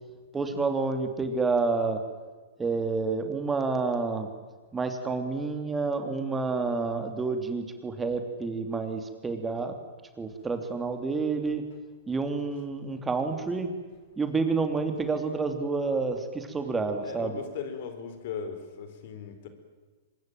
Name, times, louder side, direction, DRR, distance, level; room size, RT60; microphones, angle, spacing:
voice 1, 0.3-2.0 2.6-4.3 4.7-9.8 10.2-11.6 12.1-13.7 14.2-17.4, right 4 dB, 15° right, 6 dB, 2.9 m, -29 dB
voice 2, 17.0-19.5, left 7 dB, 55° left, 9 dB, 4.2 m, -38 dB
24.5 x 21.0 x 9.2 m, 1.3 s
hypercardioid pair, 110°, 0 cm